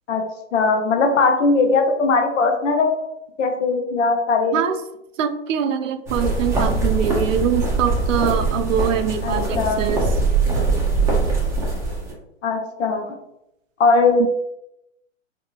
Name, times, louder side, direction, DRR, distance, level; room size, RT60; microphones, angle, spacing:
voice 1, 0.5-3.1 3.4-4.6 9.2-9.9 12.4-13.1 13.8-14.2, left 3 dB, 75° left, 4 dB, 0.7 m, -19 dB
voice 2, 5.2-10.1 14.2-14.3, right 8 dB, 80° right, 9 dB, 0.5 m, -23 dB
sound 1, 6.1-12.1, right 3 dB, 5° right, 0.6 m, -22 dB
2.6 x 2.5 x 2.8 m, 0.84 s
hypercardioid pair, 135°, 38 cm